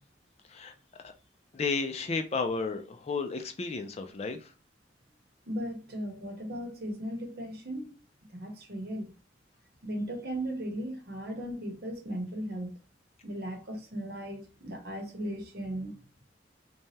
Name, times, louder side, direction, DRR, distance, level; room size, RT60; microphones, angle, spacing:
voice 1, 1.5-4.4, left 4 dB, 35° left, 0.4 m, -32 dB
voice 2, 5.5-7.9 8.3-9.1 9.8-12.8 13.2-16.0, equal, 55° right, 0.9 m, -37 dB
3.2 x 2.2 x 2.7 m
head